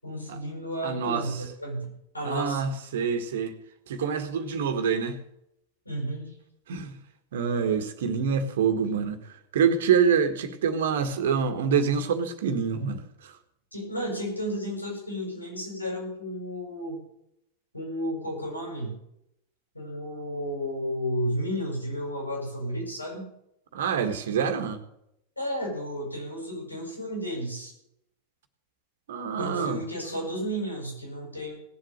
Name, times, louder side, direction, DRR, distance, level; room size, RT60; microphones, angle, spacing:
voice 1, 0.0-2.6 5.8-6.3 13.7-17.0 17.7-19.0 19.7-23.3 25.4-27.7 29.4-31.5, equal, 85° left, 6.8 m, -32 dB
voice 2, 0.8-1.2 2.2-3.6 3.9-5.2 6.7-6.9 7.3-9.2 9.5-13.3 23.7-24.8 29.1-29.8, right 6 dB, 60° right, 1.7 m, -26 dB
18.0 x 7.8 x 6.6 m
figure-of-eight pair, 90°, 0 cm